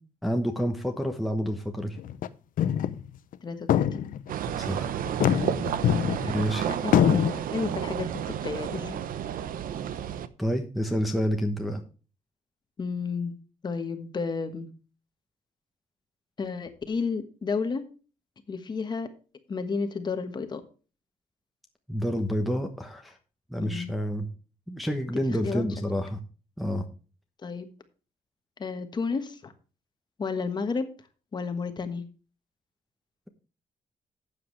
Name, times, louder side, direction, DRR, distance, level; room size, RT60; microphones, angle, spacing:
voice 1, 0.2-2.0 4.6-5.0 6.3-6.7 10.4-11.8 21.9-23.1 23.5-24.3 24.7-26.2 26.6-26.9, equal, ahead, 3 dB, 1.0 m, -28 dB
sound 1, 2.0-2.3 2.6-3.0 3.3-3.4 3.7-4.5 5.1-6.5 6.9-7.3, left 10 dB, 65° left, 0.7 m, -23 dB
voice 2, 3.4-4.1 6.2-6.4 6.8-9.0 12.8-13.3 13.6-14.7 16.4-17.8 18.5-19.1 19.5-20.6 23.6-23.9 25.3-25.6 27.4-27.7 28.6-29.5 30.2-30.9 31.3-32.1, left 4 dB, 30° left, 8 dB, 1.3 m, -32 dB
sound 2, 4.3-10.3, right 10 dB, 70° right, 0.8 m, -31 dB
12.5 x 8.4 x 3.2 m, 0.36 s
wide cardioid pair, 180°, 15 cm